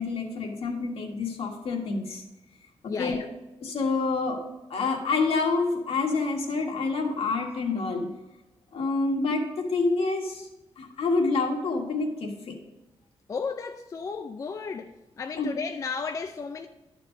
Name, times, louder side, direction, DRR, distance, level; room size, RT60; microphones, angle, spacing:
voice 1, 0.0-2.2 2.8-3.2 3.6-4.4 4.7-8.1 8.7-10.5 10.8-12.5 15.4-15.5, left 3 dB, 70° left, 1.7 m, -27 dB
voice 2, 2.9-3.3 13.3-16.7, left 5 dB, 30° left, 0.4 m, -34 dB
11.0 x 4.5 x 5.3 m
wide cardioid pair, 135°, 11 cm